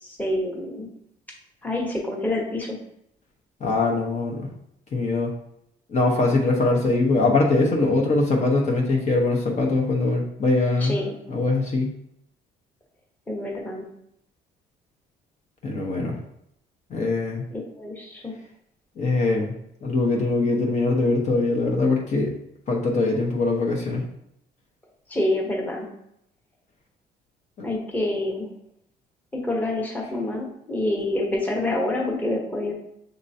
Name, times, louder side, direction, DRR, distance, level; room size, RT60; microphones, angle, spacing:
voice 1, 0.0-0.9 1.6-2.8 10.8-11.1 13.3-13.9 17.5-18.3 25.1-25.9 27.6-28.5 29.3-32.7, left 1 dB, 10° left, -1 dB, 1.0 m, -27 dB
voice 2, 3.6-4.5 4.9-5.3 5.9-11.0 11.3-11.9 15.6-16.1 16.9-17.4 19.0-19.5 19.8-22.3 22.7-24.0 27.6-27.7, left 3 dB, 45° left, -1 dB, 1.0 m, -22 dB
6.5 x 2.9 x 2.7 m, 0.76 s
cardioid pair, 110°, 17 cm